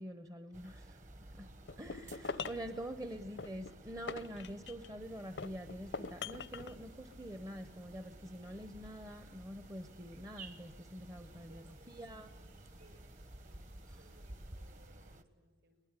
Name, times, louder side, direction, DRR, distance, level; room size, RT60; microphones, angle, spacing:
voice 1, 0.0-1.5 1.8-12.3, equal, 20° right, 10 dB, 0.7 m, -46 dB
sound 1, 0.5-15.2, right 1 dB, 40° right, 1.1 m, -54 dB
sound 2, 1.7-2.7 3.4-4.9 5.4-6.7, left 5 dB, 75° left, 0.7 m, -42 dB
voice 2, 2.9-3.8 11.5-15.8, right 1 dB, 60° right, 6 dB, 5.8 m, -66 dB
sound 3, 5.0-14.9, right 6 dB, 85° right, 7.3 m, -70 dB
22.0 x 19.5 x 9.6 m, 1.4 s
head